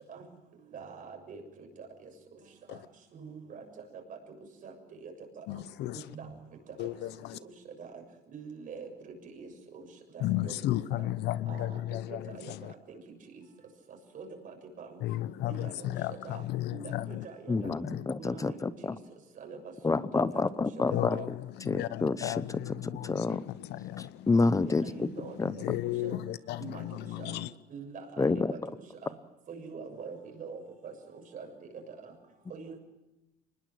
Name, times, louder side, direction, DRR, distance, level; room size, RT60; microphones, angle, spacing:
voice 1, 0.7-1.4 1.8-2.1 2.7-2.8 3.1-3.6 4.1-4.2 4.6-4.7 5.0-5.1 6.1-6.3 7.4-7.5 7.8-7.9 8.3-9.5 9.7-9.8 10.1-10.5 11.0-11.1 11.5-11.7 12.1-12.5 14.1-14.3 14.8-14.9 15.6-15.9 16.2-16.4 16.7-17.9 18.2-18.7 19.4-20.1 21.1-21.3 24.6-25.4 26.0-26.1 26.6-26.8 27.2-27.4 27.7-28.4 29.0-29.1 29.5-30.9 31.3-31.5 32.5-32.8, right 5 dB, 55° right, 7.0 m, -44 dB
voice 2, 5.5-6.0 6.8-7.4 10.2-12.7 15.0-17.3 17.6-18.1 20.9-24.3 25.2-27.5, left 14 dB, 80° left, 0.8 m, -34 dB
voice 3, 17.5-19.0 19.8-21.2 21.7-22.4 23.1-23.4 24.0-25.1 25.4-25.5 28.2-28.5, left 3 dB, 20° left, 0.8 m, -28 dB
24.5 x 20.5 x 7.7 m
cardioid pair, 110°, 17 cm